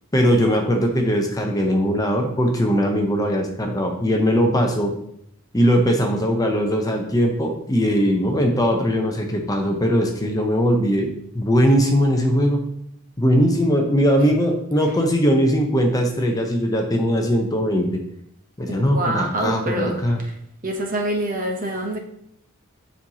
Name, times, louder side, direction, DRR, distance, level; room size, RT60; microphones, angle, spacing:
voice 1, 0.1-4.9 5.5-11.1 11.3-12.6 13.2-18.0 18.6-20.2, equal, 15° left, 2 dB, 0.7 m, -20 dB
voice 2, 18.7-20.0 20.6-22.0, right 1 dB, 35° right, 2 dB, 0.9 m, -25 dB
7.4 x 5.5 x 2.9 m, 0.72 s
head